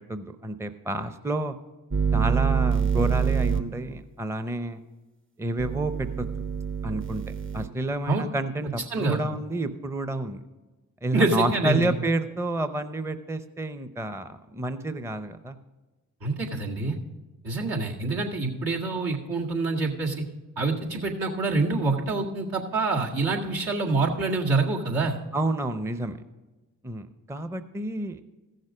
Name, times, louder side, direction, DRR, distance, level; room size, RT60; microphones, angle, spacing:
voice 1, 0.0-1.5 2.1-4.8 5.4-6.3 6.8-7.2 7.5-10.4 11.0-15.6 25.3-26.2 26.8-28.2, right 2 dB, 5° right, 10 dB, 0.7 m, -29 dB
sound 1, 1.9-3.6 5.6-7.7, right 7 dB, 30° right, 1.0 m, -25 dB
voice 2, 11.1-11.9 16.2-17.0 17.4-20.2 20.6-25.2, right 3 dB, 70° right, -2 dB, 2.0 m, -26 dB
14.5 x 6.5 x 4.9 m, 1.2 s
supercardioid pair, 45°, 38 cm